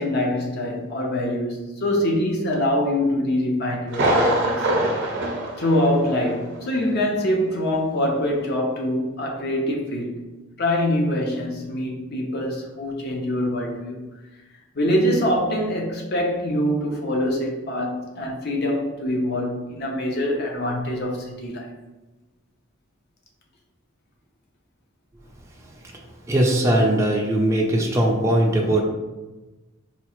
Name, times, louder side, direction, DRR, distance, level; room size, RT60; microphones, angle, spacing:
voice 1, 0.0-4.7 5.6-10.2 10.6-14.1 14.7-21.7, left 1 dB, 50° left, 0 dB, 0.7 m, -24 dB
Thunder, 3.9-6.5 6.8-6.9 7.4-7.5, right 1 dB, 55° right, 0.7 m, -23 dB
voice 2, 26.3-28.8, right 1 dB, 15° right, -1 dB, 0.4 m, -20 dB
4.2 x 2.4 x 3.0 m, 1.1 s
head